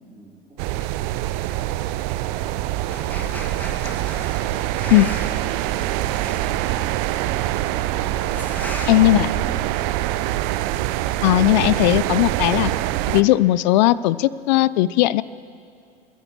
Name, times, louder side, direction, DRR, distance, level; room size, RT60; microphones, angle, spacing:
voice 1, 0.1-3.3, right 2 dB, 20° right, -6 dB, 2.8 m, -45 dB
sound 1, 0.6-13.2, right 15 dB, 40° right, 0.5 m, -24 dB
sound 2, 2.9-9.5, equal, 5° left, 2.0 m, -37 dB
voice 2, 8.9-9.3 11.2-12.7 13.1-15.2, left 16 dB, 45° left, 19 dB, 0.4 m, -17 dB
28.0 x 14.0 x 3.1 m, 2.4 s
figure-of-eight pair, 85°, 31 cm